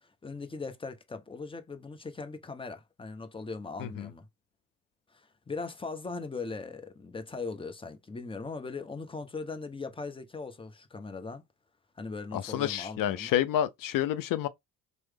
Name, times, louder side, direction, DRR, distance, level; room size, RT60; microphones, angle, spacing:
voice 1, 0.0-4.3 5.1-11.4 12.0-13.4, left 4 dB, 15° left, 0.7 m, -39 dB
voice 2, 12.3-14.5, left 11 dB, 55° left, 0.5 m, -29 dB
3.1 x 2.1 x 3.3 m
hypercardioid pair, 70°, 40 cm